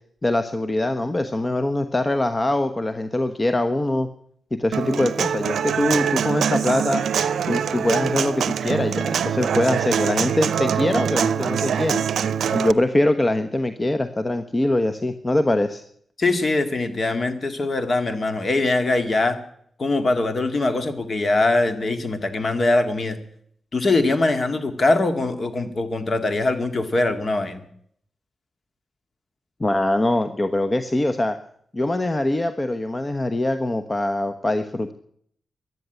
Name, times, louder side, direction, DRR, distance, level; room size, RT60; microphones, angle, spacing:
voice 1, 0.2-4.1 4.5-7.0 7.5-12.1 12.5-15.8 29.6-31.4 31.7-34.9, left 1 dB, 30° left, 10 dB, 1.1 m, -23 dB
Human voice / Acoustic guitar, 4.7-12.7, right 8 dB, 75° right, 0.6 m, -24 dB
voice 2, 16.2-19.4 19.8-23.2 23.7-27.6, left 2 dB, 50° left, 9 dB, 2.2 m, -22 dB
14.5 x 11.0 x 9.0 m, 0.67 s
supercardioid pair, 45°, 0 cm